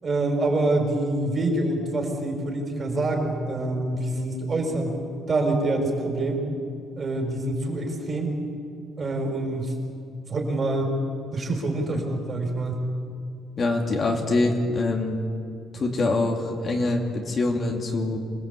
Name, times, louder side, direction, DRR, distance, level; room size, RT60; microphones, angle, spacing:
voice 1, 0.0-4.9 5.3-6.4 7.0-8.3 9.0-9.7 10.3-10.9 11.3-12.8, right 2 dB, 30° right, 2 dB, 5.0 m, -26 dB
voice 2, 13.6-15.2 15.7-18.2, left 2 dB, 35° left, 1 dB, 2.7 m, -24 dB
27.0 x 18.5 x 8.5 m, 2.4 s
cardioid pair, 135°, 0 cm